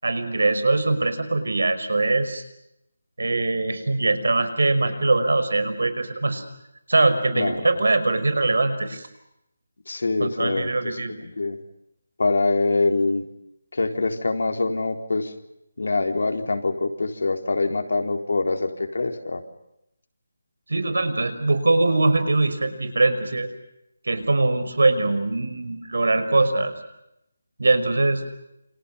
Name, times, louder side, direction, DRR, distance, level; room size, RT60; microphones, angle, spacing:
voice 1, 0.0-2.4 3.2-6.4 6.9-9.1 10.2-11.2 20.7-23.5 24.1-26.7 27.6-28.2, right 2 dB, 90° right, 11 dB, 5.6 m, -22 dB
voice 2, 7.3-7.8 9.9-11.6 12.2-13.3 13.7-15.3 15.8-19.4, left 3 dB, 65° left, 5 dB, 4.0 m, -24 dB
29.0 x 28.0 x 5.6 m, 0.84 s
hypercardioid pair, 180°, 0 cm